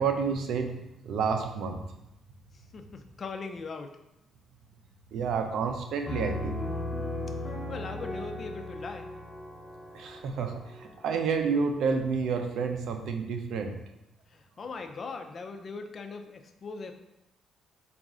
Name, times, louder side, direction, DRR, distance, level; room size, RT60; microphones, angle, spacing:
voice 1, 0.0-1.8 5.1-6.6 9.9-13.7, right 5 dB, 75° right, 5 dB, 0.5 m, -30 dB
voice 2, 2.7-3.9 7.7-9.1 14.3-16.9, left 4 dB, 45° left, 6 dB, 0.4 m, -39 dB
Piano, 6.1-11.6, left 2 dB, 25° left, 1.0 m, -37 dB
4.0 x 2.4 x 3.6 m, 0.87 s
cardioid pair, 90°, 0 cm